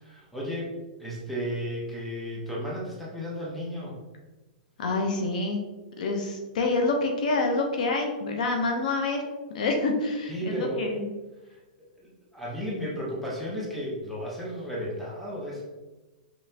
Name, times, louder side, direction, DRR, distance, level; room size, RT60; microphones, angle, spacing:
voice 1, 0.0-0.7 1.0-4.0 10.3-10.9 11.5-11.6 12.0-15.6, equal, ahead, -6 dB, 0.8 m, -33 dB
voice 2, 4.8-5.6 6.0-9.2 9.5-11.0, left 3 dB, 65° left, 3 dB, 0.8 m, -27 dB
5.3 x 3.1 x 2.8 m, 1.2 s
supercardioid pair, 170°, 5 cm